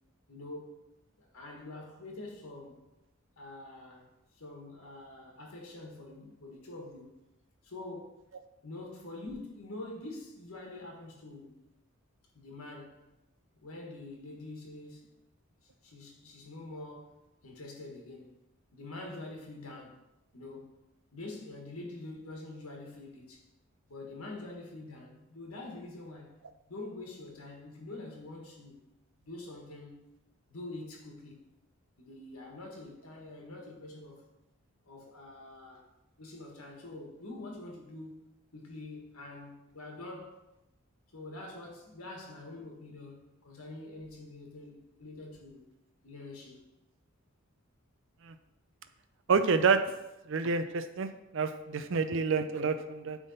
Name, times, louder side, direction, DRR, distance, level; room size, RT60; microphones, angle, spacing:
voice 1, 0.3-0.8 1.2-2.8 3.4-4.1 4.3-7.2 7.6-8.2 8.6-11.6 12.4-13.0 13.6-15.1 15.6-18.3 18.7-20.0 20.3-20.7 21.1-23.4 23.9-26.4 26.7-28.8 29.2-30.1 30.5-31.4 32.0-34.3 34.8-35.9 36.2-40.4 41.1-45.6 46.0-46.7, left 2 dB, 80° left, 0 dB, 1.6 m, -45 dB
voice 2, 49.3-49.8 50.3-53.2, right 5 dB, 60° right, 9 dB, 0.5 m, -28 dB
9.1 x 3.6 x 4.0 m, 0.95 s
head